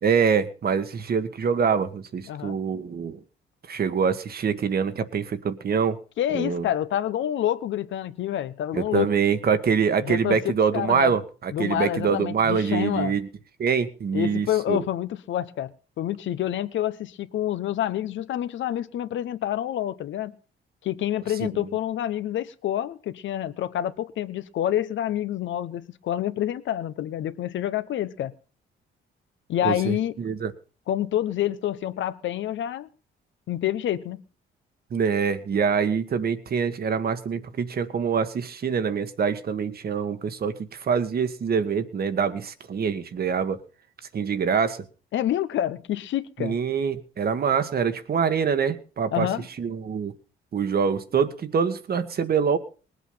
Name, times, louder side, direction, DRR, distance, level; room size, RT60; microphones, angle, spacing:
voice 1, 0.0-3.2 3.7-6.0 6.3-6.6 8.7-13.3 13.6-14.8 21.6-21.7 29.6-30.5 34.9-43.6 44.1-44.8 46.4-49.3 49.6-50.1 50.5-52.6, right 6 dB, 50° right, 1.5 m, -25 dB
voice 2, 6.2-9.1 10.0-11.2 11.5-13.2 14.1-20.3 20.8-28.3 29.5-30.1 30.9-32.9 33.5-34.2 45.1-46.6 49.1-49.5, left 11 dB, 75° left, 1.0 m, -28 dB
19.5 x 8.2 x 5.7 m
cardioid pair, 90°, 20 cm